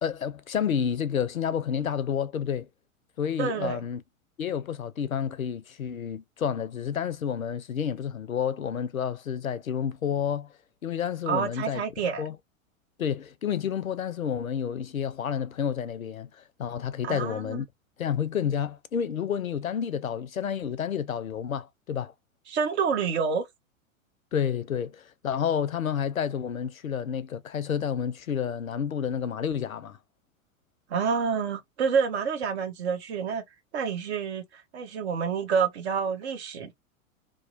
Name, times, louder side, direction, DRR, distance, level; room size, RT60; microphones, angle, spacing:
voice 1, 0.0-2.7 3.2-4.0 4.4-10.5 10.8-11.8 12.2-12.3 13.0-16.3 16.6-17.7 18.0-22.1 24.3-30.0, left 8 dB, 85° left, 0.5 m, -30 dB
voice 2, 3.4-3.8 11.3-12.2 17.0-17.6 22.5-23.5 30.9-33.4 33.7-36.7, right 6 dB, 50° right, 1.0 m, -28 dB
2.9 x 2.0 x 2.4 m
figure-of-eight pair, 95°, 41 cm